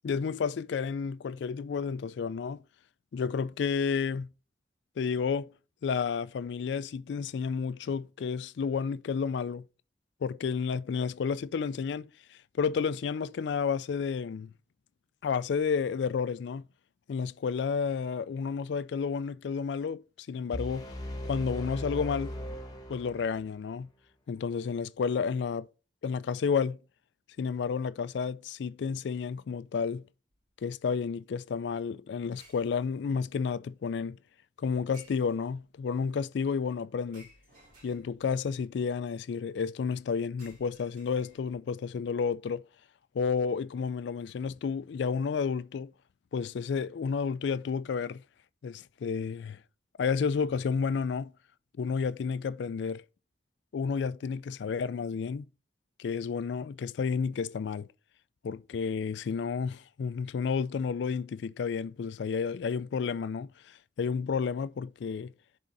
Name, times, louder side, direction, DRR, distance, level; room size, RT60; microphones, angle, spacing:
voice 1, 0.0-2.6 3.1-4.3 5.0-5.5 5.8-9.6 10.2-14.5 15.2-16.6 17.1-20.9 21.2-22.3 22.9-23.9 24.3-25.7 26.0-26.8 27.4-30.0 30.6-34.2 34.6-37.3 37.8-42.6 43.1-45.9 46.3-48.2 48.6-49.6 50.0-51.3 51.8-53.0 53.7-55.5 56.0-57.9 58.4-65.3, left 6 dB, 70° left, 0.3 m, -31 dB
sound 1, 20.5-23.6, left 1 dB, 20° left, 1.0 m, -38 dB
sound 2, 30.3-30.5 32.4-33.2 34.9-35.7 37.1-38.4 40.4-41.7, right 1 dB, 45° right, 2.8 m, -58 dB
10.0 x 3.7 x 4.0 m
head